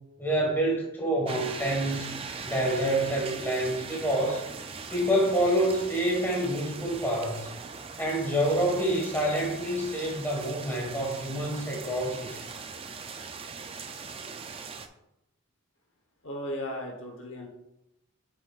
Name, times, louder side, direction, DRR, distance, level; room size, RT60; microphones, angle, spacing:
voice 1, 0.2-2.1 2.5-4.4 4.9-7.5 8.0-12.5, right 1 dB, 10° left, -2 dB, 1.5 m, -27 dB
sound 1, 1.3-14.9, right 5 dB, 25° right, 0.3 m, -40 dB
voice 2, 16.2-17.5, equal, 60° left, 1 dB, 1.1 m, -36 dB
7.5 x 6.4 x 2.4 m, 0.87 s
head